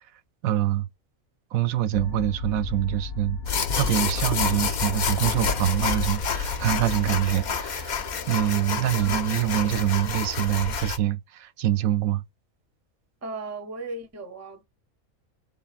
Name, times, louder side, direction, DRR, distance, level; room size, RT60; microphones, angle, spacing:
voice 1, 0.4-0.9 1.5-12.2, right 12 dB, 85° right, 1.0 m, -25 dB
sound 1, 1.9-7.3, left 6 dB, 90° left, 1.1 m, -34 dB
sound 2, 3.4-11.0, left 5 dB, 55° left, 0.5 m, -29 dB
voice 2, 9.0-9.4 13.2-14.6, right 2 dB, 20° right, 0.5 m, -37 dB
3.9 x 3.9 x 2.4 m
omnidirectional pair, 1.4 m